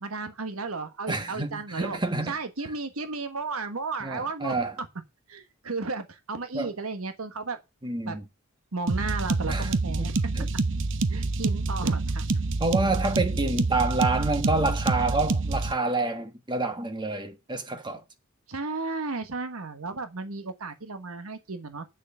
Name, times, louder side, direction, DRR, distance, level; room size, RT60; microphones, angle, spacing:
voice 1, 0.0-2.0 2.2-4.9 5.3-7.6 8.1-8.2 8.7-10.1 11.1-12.2 18.5-21.8, right 3 dB, 80° right, 1.4 m, -34 dB
voice 2, 1.1-2.3 4.0-4.7 6.5-6.7 7.8-8.2 9.5-9.7 10.0-10.5 12.6-18.0, right 3 dB, 20° right, 1.4 m, -28 dB
sound 1, 8.9-15.7, right 3 dB, 60° right, 0.7 m, -27 dB
8.2 x 6.7 x 7.0 m
head